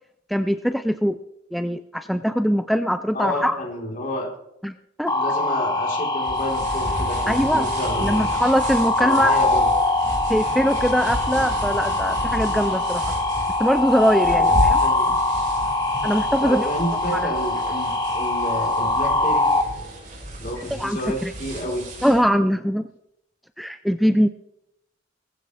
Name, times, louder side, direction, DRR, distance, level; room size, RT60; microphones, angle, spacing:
voice 1, 0.3-1.2 1.5-3.6 4.6-5.1 7.3-7.7 8.0-9.4 10.3-13.0 13.6-14.8 16.0-17.3 20.7-21.3 22.0-22.9 23.6-24.3, equal, ahead, 9 dB, 0.4 m, -22 dB
voice 2, 3.1-4.3 5.1-8.2 9.0-9.7 14.3-14.5 14.8-15.1 16.4-19.5 20.4-21.8, left 1 dB, 45° left, -1 dB, 4.3 m, -30 dB
sound 1, 5.1-19.6, left 2 dB, 25° left, 1.8 m, -23 dB
sound 2, 6.2-22.2, equal, 45° right, 5.4 m, -33 dB
19.0 x 15.0 x 3.5 m, 0.81 s
head